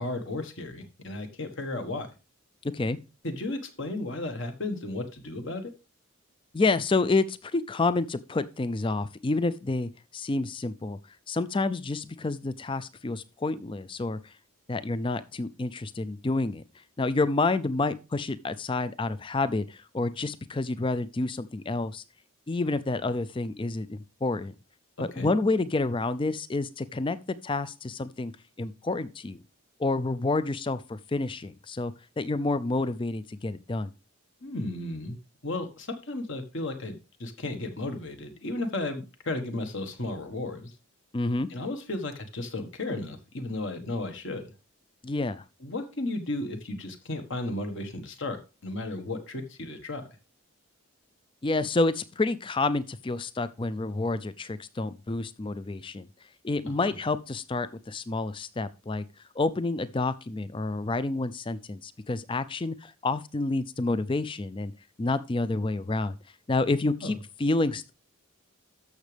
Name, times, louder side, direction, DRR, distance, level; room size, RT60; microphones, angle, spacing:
voice 1, 0.0-2.1 3.2-5.7 25.0-25.3 34.4-35.2 35.4-40.7 41.5-44.5 45.6-50.0 56.8-56.9 67.0-67.1, left 2 dB, 55° left, 6 dB, 1.4 m, -34 dB
voice 2, 6.5-11.0 11.3-14.2 14.7-16.6 17.0-22.0 22.5-24.5 25.0-27.2 27.4-28.3 28.6-29.4 29.8-33.9 41.1-41.5 45.0-45.4 51.4-56.1 56.4-59.0 59.4-64.7 65.0-66.2 66.5-67.9, left 3 dB, 20° left, 15 dB, 0.4 m, -29 dB
13.0 x 6.1 x 3.4 m, 0.31 s
head